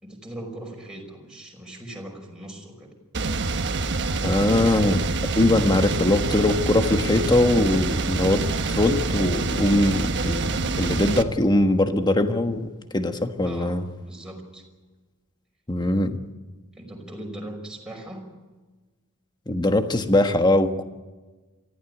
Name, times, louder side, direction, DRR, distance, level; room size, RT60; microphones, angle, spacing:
voice 1, 0.0-3.0 13.4-14.6 16.7-18.3, right 1 dB, 5° right, -1 dB, 5.5 m, -40 dB
sound 1, 3.1-11.2, right 3 dB, 55° right, 1.2 m, -26 dB
voice 2, 4.2-5.1 5.4-13.8 15.7-16.2 19.5-20.8, left 1 dB, 20° left, 7 dB, 1.4 m, -21 dB
24.0 x 15.0 x 9.8 m, 1.3 s
head